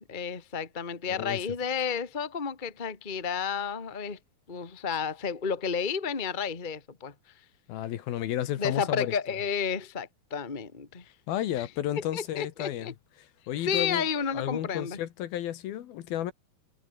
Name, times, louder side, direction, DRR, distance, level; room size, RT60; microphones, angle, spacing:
voice 1, 0.1-4.2 4.5-7.1 8.6-11.1 11.5-11.7 12.1-12.9 13.6-15.0, left 6 dB, 20° left, 1.4 m, -31 dB
voice 2, 1.1-1.4 7.7-9.1 11.3-12.9 13.5-14.0 14.3-16.3, left 12 dB, 70° left, 3.0 m, -32 dB
omnidirectional pair, 4.7 m